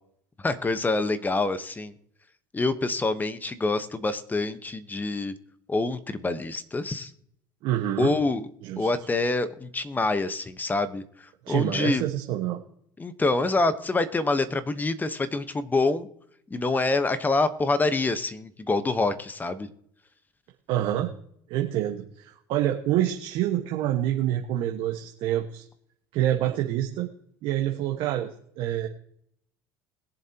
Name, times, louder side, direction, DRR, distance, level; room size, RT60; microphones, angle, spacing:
voice 1, 0.4-1.9 2.5-5.3 5.7-7.1 8.0-8.5 8.8-12.0 13.0-16.1 16.5-19.7, left 3 dB, 20° left, 11 dB, 1.1 m, -26 dB
voice 2, 7.6-8.1 8.6-8.9 11.4-12.6 20.7-21.1 21.5-25.6 26.1-27.1 27.4-28.3 28.6-28.9, right 12 dB, 65° right, 2 dB, 1.5 m, -27 dB
21.5 x 7.4 x 2.9 m, 0.68 s
supercardioid pair, 90°, 9 cm